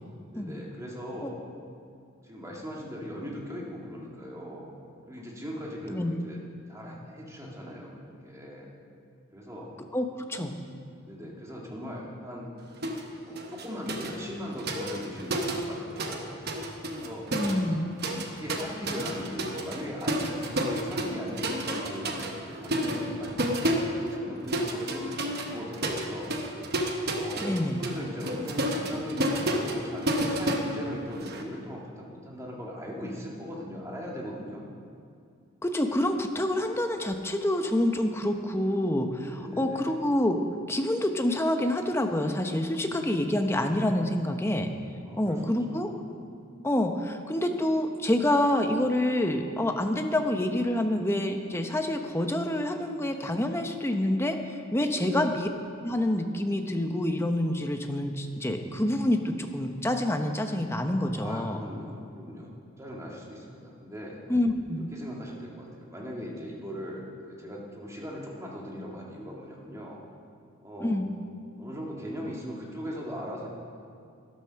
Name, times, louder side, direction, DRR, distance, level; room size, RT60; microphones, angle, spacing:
voice 1, 0.3-1.4 2.2-4.7 5.1-6.4 6.7-8.7 9.3-9.7 11.1-12.5 13.3-16.4 16.9-17.3 18.3-22.1 22.4-26.4 27.1-34.7 39.3-40.0 45.0-46.0 54.9-55.3 61.1-62.5 62.8-64.2 64.7-70.0 70.6-71.0 71.6-73.5, equal, 15° right, -3 dB, 2.0 m, -39 dB
voice 2, 9.9-10.6 17.3-17.9 27.4-27.8 35.6-40.4 40.7-44.7 45.2-45.9 46.6-55.5 55.8-61.6 64.3-64.9 70.8-71.1, left 1 dB, 10° left, 5 dB, 0.7 m, -27 dB
sound 1, 12.8-13.1 13.4-16.2 16.5-31.4, right 1 dB, 45° right, 1.1 m, -31 dB
13.0 x 12.0 x 5.8 m, 2.4 s
head